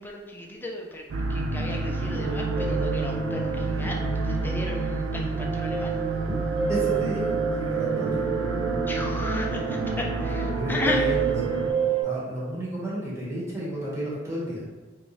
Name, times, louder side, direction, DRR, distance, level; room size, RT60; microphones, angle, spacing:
voice 1, 0.0-6.0 8.9-11.1, left 1 dB, 10° left, -1 dB, 0.4 m, -34 dB
sound 1, 1.1-11.7, right 2 dB, 75° right, 0.4 m, -29 dB
sound 2, 1.9-12.0, right 7 dB, 55° right, 1.0 m, -30 dB
voice 2, 6.7-8.2 10.2-10.3 10.5-11.7 12.0-14.6, right 1 dB, 15° right, -8 dB, 1.1 m, -32 dB
3.5 x 2.6 x 3.1 m, 1.2 s
head